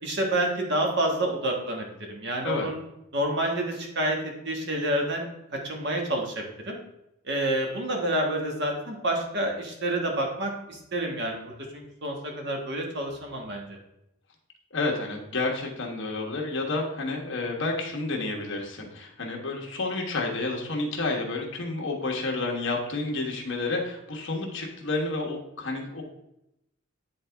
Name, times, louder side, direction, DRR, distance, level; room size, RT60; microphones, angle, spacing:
voice 1, 0.0-2.8 3.1-4.2 4.4-5.2 5.6-6.8 7.2-13.8, right 1 dB, 55° right, 1 dB, 1.4 m, -28 dB
voice 2, 14.7-26.0, left 3 dB, 60° left, 0 dB, 1.3 m, -30 dB
9.3 x 3.8 x 3.4 m, 0.85 s
head